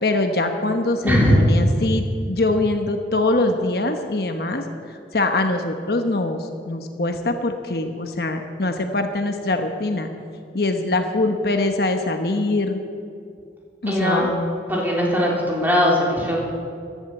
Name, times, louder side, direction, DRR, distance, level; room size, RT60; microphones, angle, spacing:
voice 1, 0.0-4.6 5.1-10.1 10.5-12.8 13.8-14.3, left 2 dB, 60° left, 5 dB, 1.1 m, -23 dB
voice 2, 1.0-1.4 13.9-14.3 14.7-16.4, equal, 10° right, -4 dB, 3.3 m, -19 dB
14.5 x 11.5 x 7.9 m, 2.4 s
head